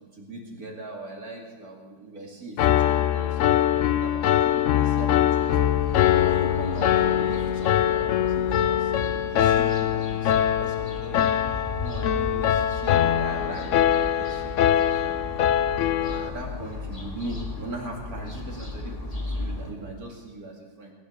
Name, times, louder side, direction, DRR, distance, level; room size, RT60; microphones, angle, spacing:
voice 1, 0.0-11.4 11.8-15.2 15.9-20.9, right 2 dB, 55° right, 0 dB, 2.9 m, -39 dB
Piano, 2.6-16.3, left 11 dB, 70° left, 0.7 m, -23 dB
sound 1, 5.3-19.7, left 2 dB, 20° left, 1.7 m, -36 dB
19.0 x 9.5 x 6.6 m, 1.3 s
omnidirectional pair, 1.9 m